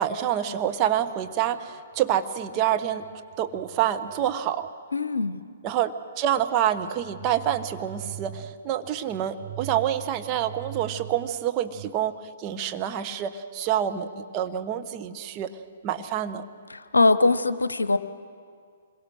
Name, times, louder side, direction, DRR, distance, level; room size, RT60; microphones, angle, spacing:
voice 1, 0.0-4.7 5.6-15.6 15.8-16.4, right 10 dB, 30° right, 7 dB, 1.0 m, -27 dB
voice 2, 4.9-5.4 16.7-18.0, left 3 dB, 75° left, 13 dB, 0.9 m, -22 dB
26.0 x 22.5 x 6.4 m, 2.2 s
figure-of-eight pair, 120°, 0 cm